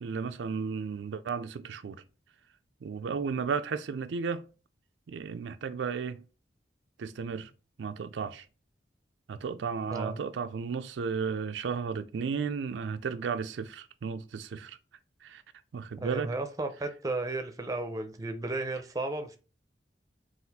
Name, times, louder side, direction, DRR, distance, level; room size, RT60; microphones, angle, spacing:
voice 1, 0.0-2.0 2.8-4.4 5.1-6.2 7.0-7.5 7.8-8.4 9.3-14.8 15.2-15.4 15.7-16.3, right 5 dB, 90° right, 0.4 m, -34 dB
voice 2, 16.0-19.4, right 2 dB, 20° right, 0.5 m, -34 dB
4.1 x 2.5 x 4.0 m
head